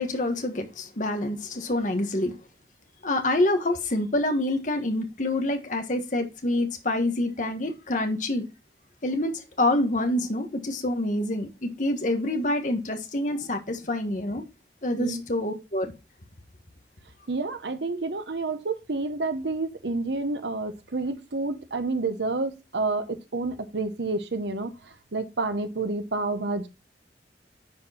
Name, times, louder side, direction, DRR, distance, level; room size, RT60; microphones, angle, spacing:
voice 1, 0.0-2.3 3.0-8.4 9.0-14.4 14.8-15.9, left 1 dB, 45° left, 1.3 m, -27 dB
voice 2, 17.3-26.7, right 3 dB, 75° right, 1.0 m, -29 dB
10.5 x 4.4 x 4.2 m
head